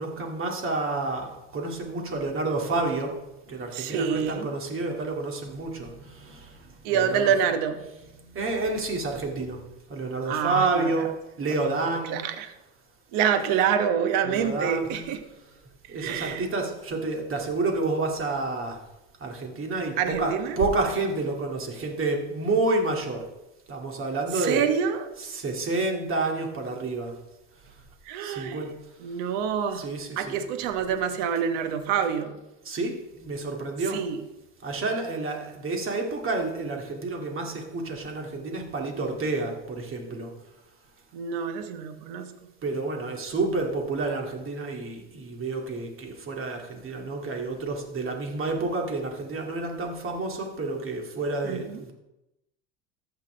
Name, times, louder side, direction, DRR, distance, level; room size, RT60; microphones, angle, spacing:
voice 1, 0.0-3.1 3.5-7.4 7.8-8.1 8.3-9.6 9.9-11.1 11.4-12.2 14.2-15.1 15.9-18.8 19.2-23.2 23.7-24.6 25.2-27.1 28.2-28.7 29.7-30.5 32.6-34.0 34.6-40.3 42.6-51.9, right 3 dB, 35° right, 1 dB, 2.3 m, -29 dB
voice 2, 3.7-4.5 6.8-7.9 10.2-10.9 12.1-12.5 13.1-15.2 16.0-16.4 20.0-20.6 24.3-25.1 28.1-28.6 29.0-29.9 30.2-32.4 33.9-34.2 41.1-42.3 51.4-51.8, right 8 dB, 65° right, 8 dB, 1.2 m, -27 dB
14.5 x 6.0 x 3.3 m, 0.94 s
supercardioid pair, 100°, 36 cm